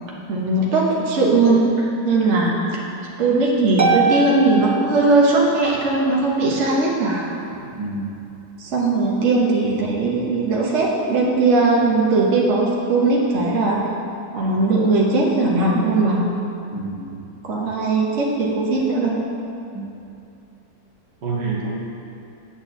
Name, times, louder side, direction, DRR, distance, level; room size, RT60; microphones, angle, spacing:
voice 1, 0.3-2.8 3.2-7.7 8.6-13.8 14.3-16.3 17.4-19.2, right 3 dB, 45° right, -3 dB, 1.3 m, -19 dB
Harp, 3.8-5.7, right 5 dB, 90° right, 0.4 m, -22 dB
voice 2, 7.7-8.1 16.7-17.2 19.7-19.9 21.2-21.8, right 3 dB, 75° right, -4 dB, 2.0 m, -28 dB
8.5 x 4.5 x 7.0 m, 2.7 s
omnidirectional pair, 1.9 m